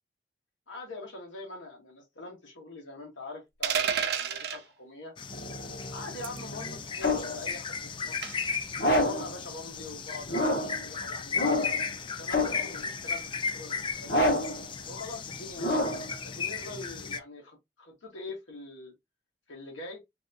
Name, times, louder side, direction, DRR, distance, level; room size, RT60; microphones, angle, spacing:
voice 1, 0.7-5.1 5.9-8.2 8.9-11.5 12.2-14.3 14.8-15.9 16.2-18.9 19.5-20.0, left 2 dB, 80° left, 1.0 m, -43 dB
sound 1, 3.6-4.6 6.2-6.5 8.2-8.5, right 7 dB, 55° right, 0.5 m, -29 dB
sound 2, 5.2-17.2, left 5 dB, 25° left, 0.3 m, -36 dB
sound 3, 5.3-7.4 8.8-9.3 10.3-10.8 11.3-11.9 12.3-12.8 14.1-14.6 15.6-16.1, left 1 dB, 55° left, 1.0 m, -28 dB
3.3 x 2.6 x 2.6 m
head